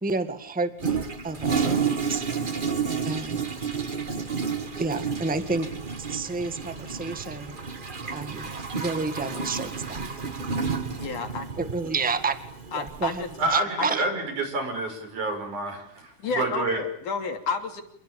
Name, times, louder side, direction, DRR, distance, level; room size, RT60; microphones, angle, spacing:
voice 1, 0.0-2.2 3.0-3.4 4.8-5.7 6.1-7.6 8.1-10.1 11.6-12.4 12.7-13.2 13.5-14.0, right 3 dB, 5° right, 9 dB, 1.1 m, -30 dB
Toilet flush, 0.8-13.6, right 5 dB, 35° right, 0.8 m, -31 dB
voice 2, 10.9-11.5 12.7-13.3 13.8-14.0 16.2-17.8, left 4 dB, 85° left, 5 dB, 4.6 m, -31 dB
voice 3, 13.4-16.8, right 2 dB, 85° right, 7 dB, 7.0 m, -28 dB
28.0 x 21.0 x 8.9 m, 0.72 s
omnidirectional pair, 3.4 m